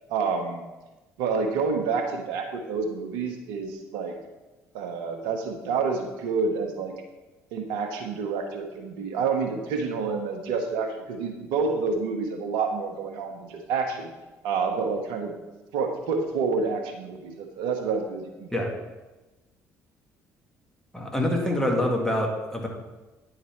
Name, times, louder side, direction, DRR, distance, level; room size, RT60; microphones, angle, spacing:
voice 1, 0.1-0.7 1.2-4.1 4.7-6.9 7.5-14.1 14.4-15.3 15.7-18.6 21.4-21.6, right 5 dB, 75° right, 4 dB, 1.0 m, -28 dB
voice 2, 20.9-22.7, left 1 dB, 5° left, 0 dB, 1.9 m, -25 dB
9.4 x 3.9 x 4.5 m, 1.1 s
hypercardioid pair, 55°, 8 cm